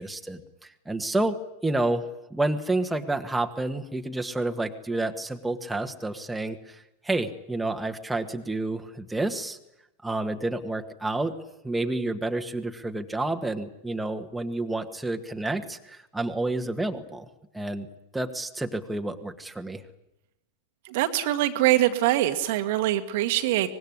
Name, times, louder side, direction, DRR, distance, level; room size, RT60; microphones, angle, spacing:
voice 1, 0.0-1.4 1.6-9.6 10.0-11.3 11.6-17.3 17.5-17.9 18.1-19.8, right 2 dB, 5° right, 4 dB, 1.8 m, -29 dB
voice 2, 20.9-23.7, right 14 dB, 50° right, 7 dB, 1.8 m, -23 dB
24.5 x 20.5 x 9.8 m, 0.85 s
figure-of-eight pair, 90°, 0 cm